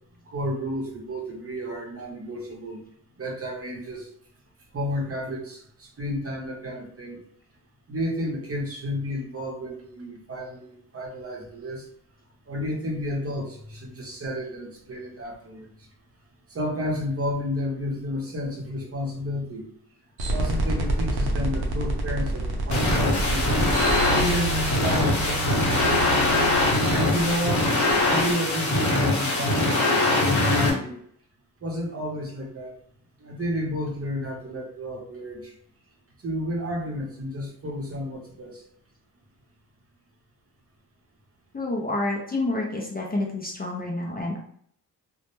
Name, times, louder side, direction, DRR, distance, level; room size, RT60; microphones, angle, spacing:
voice 1, 0.3-2.8 3.2-4.1 4.7-7.2 7.9-11.8 12.5-15.7 16.5-19.7 20.3-23.5 24.1-25.9 26.9-27.7 28.1-31.0 31.6-32.7 33.2-35.5 36.2-38.6, left 1 dB, 40° right, -1 dB, 0.7 m, -31 dB
sound 1, 20.2-28.3, right 2 dB, 90° right, 0.6 m, -28 dB
sound 2, 22.7-30.7, left 2 dB, 50° left, 0.8 m, -22 dB
voice 2, 41.5-44.4, left 2 dB, 25° left, -1 dB, 0.4 m, -28 dB
2.1 x 2.0 x 3.0 m, 0.64 s
cardioid pair, 80°, 38 cm